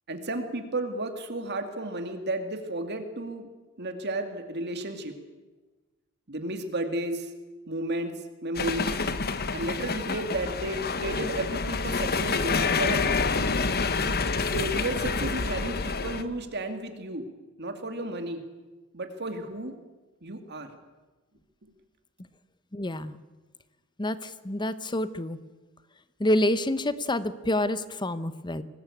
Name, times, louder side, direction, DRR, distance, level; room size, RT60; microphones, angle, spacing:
voice 1, 0.1-3.5 3.8-5.1 6.3-7.3 7.7-8.1 8.4-8.9 9.5-13.2 14.4-17.3 17.6-18.4 18.9-19.8 20.2-20.7, right 1 dB, 50° right, 6 dB, 2.2 m, -33 dB
sound 1, 8.5-16.2, left 4 dB, 45° left, 1.2 m, -28 dB
voice 2, 22.7-23.2 24.0-25.4 26.2-28.6, left 1 dB, 20° left, 14 dB, 1.0 m, -27 dB
24.0 x 19.0 x 8.5 m, 1.2 s
head